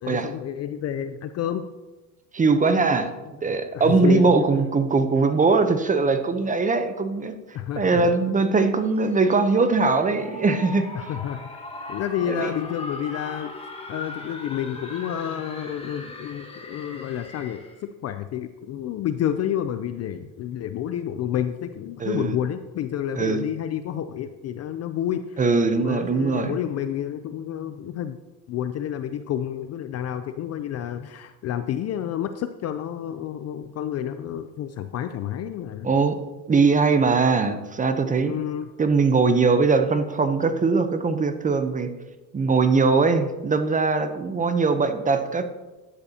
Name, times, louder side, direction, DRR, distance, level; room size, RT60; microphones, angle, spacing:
voice 1, 0.0-1.7 3.7-4.5 7.5-8.1 10.9-11.4 11.9-13.5 13.9-25.4 25.7-28.2 28.5-35.9 38.2-38.7, left 10 dB, 35° left, 10 dB, 0.4 m, -29 dB
voice 2, 2.3-3.1 3.4-7.4 7.8-10.9 12.3-12.5 22.0-22.4 23.1-23.4 25.4-26.6 35.8-36.2 36.5-38.3 38.8-41.9 42.3-45.5, right 4 dB, 15° right, 9 dB, 0.7 m, -21 dB
sound 1, 9.0-17.8, left 2 dB, 10° left, 1.5 m, -39 dB
12.0 x 9.7 x 2.8 m, 1.2 s
supercardioid pair, 105°, 49 cm